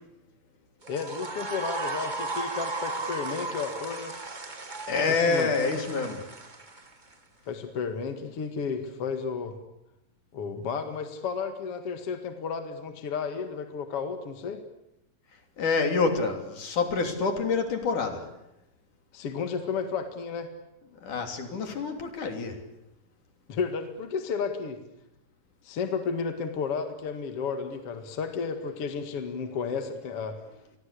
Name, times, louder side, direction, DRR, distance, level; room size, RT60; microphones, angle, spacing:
sound 1, 0.8-7.1, right 3 dB, 25° right, 1.0 m, -35 dB
voice 1, 0.9-4.1 5.1-5.5 7.5-9.6 10.3-14.6 19.1-20.5 23.5-24.8 25.6-30.4, left 5 dB, 45° left, 7 dB, 2.6 m, -32 dB
voice 2, 4.9-6.2 15.6-18.2 21.0-22.6, left 4 dB, 65° left, 5 dB, 4.5 m, -27 dB
29.0 x 22.5 x 8.4 m, 0.88 s
omnidirectional pair, 4.0 m